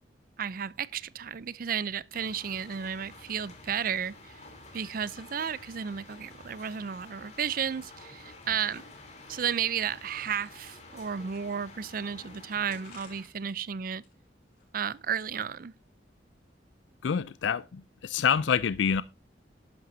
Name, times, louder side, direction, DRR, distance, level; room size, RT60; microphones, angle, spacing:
voice 1, 0.4-4.4 4.7-8.8 9.3-14.0 14.7-15.7, right 7 dB, 50° right, 0.5 m, -33 dB
sound 1, 2.1-13.2, left 2 dB, 40° left, 3.4 m, -50 dB
sound 2, 11.1-12.0 12.7-13.5 13.9-15.1, left 4 dB, 55° left, 6.4 m, -56 dB
voice 2, 17.0-19.0, left 7 dB, 85° left, 0.4 m, -27 dB
11.5 x 11.0 x 2.7 m
head